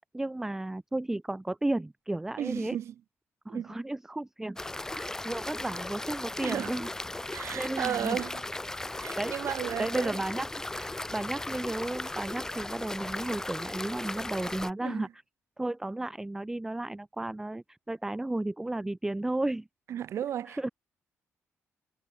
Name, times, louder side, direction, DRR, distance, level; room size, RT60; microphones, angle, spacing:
voice 1, 0.1-2.8 3.5-4.6 4.8-8.2 8.9-9.4 9.8-15.1 15.6-19.7 20.5-20.7, right 2 dB, 10° right, 0.6 m, -33 dB
voice 2, 2.4-2.9 3.5-3.7 6.4-6.7 7.3-8.4 9.0-10.1 14.8-15.1 19.9-20.7, right 10 dB, 70° right, 1.5 m, -34 dB
sound 1, 4.6-14.7, left 2 dB, 10° left, 1.3 m, -37 dB
wide cardioid pair, 155°, 5 cm